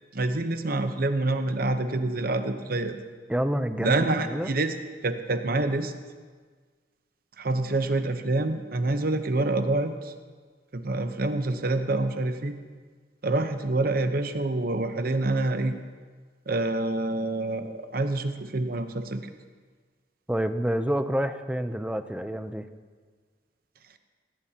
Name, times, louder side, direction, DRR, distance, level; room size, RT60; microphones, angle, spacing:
voice 1, 0.1-3.0 3.8-4.7 5.0-5.9 7.4-10.1 10.7-12.5 13.2-15.8 16.5-19.2, right 2 dB, 55° right, 8 dB, 0.9 m, -27 dB
voice 2, 3.3-4.5 20.3-22.7, equal, 5° right, 9 dB, 0.5 m, -28 dB
19.0 x 17.0 x 2.9 m, 1.5 s
head